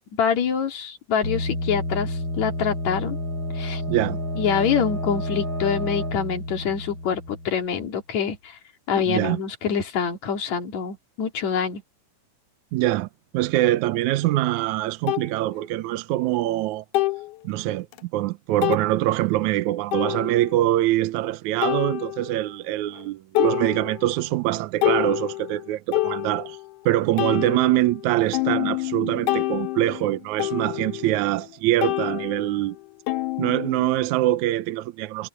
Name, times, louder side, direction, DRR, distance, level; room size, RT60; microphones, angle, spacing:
voice 1, 0.1-3.2 3.6-3.8 4.4-8.6 8.9-11.8, left 7 dB, 60° left, 3.8 m, -25 dB
sound 1, 1.2-7.8, left 1 dB, 30° left, 7.1 m, -30 dB
voice 2, 3.9-4.2 9.1-9.4 12.7-13.1 13.3-16.9 17.4-26.6 26.9-32.8 33.4-35.3, right 15 dB, 75° right, 1.9 m, -24 dB
sound 2, 14.2-14.3 15.1-15.3 16.9-17.3 17.9-18.0 18.6-18.9 19.9-20.5 21.6-22.5 22.9-23.1 23.3-24.2 24.6-26.7 27.2-31.5 31.8-34.1, left 17 dB, 75° left, 2.3 m, -27 dB
omnidirectional pair, 3.8 m